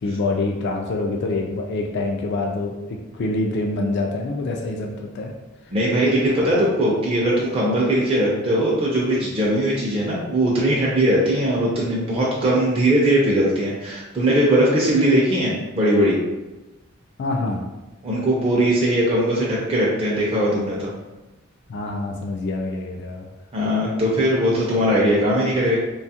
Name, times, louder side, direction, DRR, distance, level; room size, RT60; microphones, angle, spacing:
voice 1, 0.0-5.3 6.4-6.6 17.2-17.7 21.7-23.3, left 2 dB, 55° left, 1 dB, 0.3 m, -26 dB
voice 2, 5.7-16.2 18.0-20.9 23.5-25.8, right 1 dB, 30° right, -5 dB, 0.4 m, -20 dB
2.7 x 2.3 x 2.7 m, 1.1 s
head